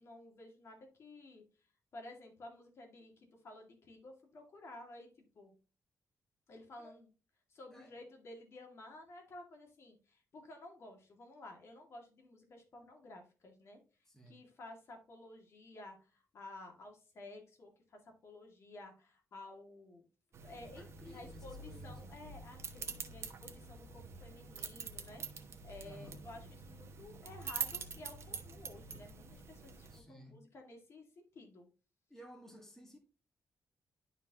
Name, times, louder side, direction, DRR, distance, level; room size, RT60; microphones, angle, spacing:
voice 1, 0.0-1.4 1.9-5.1 5.3-5.5 6.5-7.1 7.5-13.8 14.3-20.0 20.4-31.0 31.3-31.7, left 2 dB, 50° left, 2.1 m, -53 dB
voice 2, 14.1-14.4 20.7-22.1 25.8-26.2 29.9-30.4 32.1-33.0, left 1 dB, 5° left, 1.7 m, -55 dB
sound 1, 20.3-30.0, right 5 dB, 55° right, 1.1 m, -46 dB
11.5 x 4.3 x 2.9 m
wide cardioid pair, 145°, 6 cm